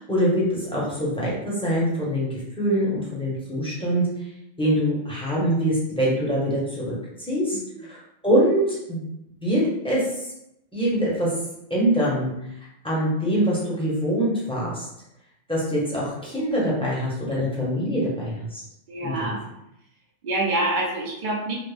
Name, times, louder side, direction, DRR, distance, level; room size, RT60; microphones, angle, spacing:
voice 1, 0.0-4.1 4.6-9.0 9.4-10.3 10.7-11.3 11.7-12.3 12.8-14.9 15.5-18.6 19.0-19.3, equal, 5° left, -7 dB, 0.6 m, -24 dB
voice 2, 18.9-19.4 20.2-21.5, right 2 dB, 55° right, -3 dB, 0.6 m, -26 dB
2.4 x 2.0 x 3.2 m, 0.81 s
omnidirectional pair, 1.2 m